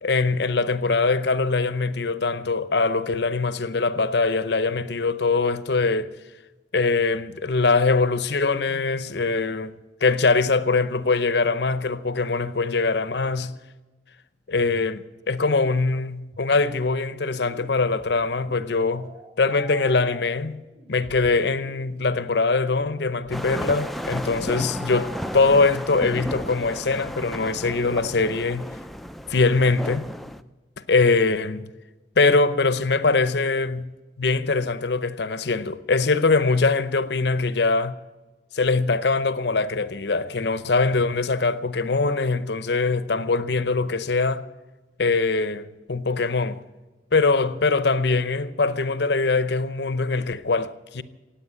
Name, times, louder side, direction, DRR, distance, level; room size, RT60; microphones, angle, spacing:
voice 1, 0.0-6.1 6.7-9.7 10.0-13.5 14.5-19.1 19.4-20.6 20.9-28.7 29.3-30.1 30.9-31.7 32.2-33.9 34.2-38.0 38.5-44.5 45.0-46.6 47.1-51.0, left 3 dB, 65° left, 0.7 m, -22 dB
sound 1, 16.9-26.9, equal, 35° right, 2.8 m, -46 dB
sound 2, 23.3-30.4, equal, ahead, 0.4 m, -33 dB
17.0 x 8.6 x 9.8 m
head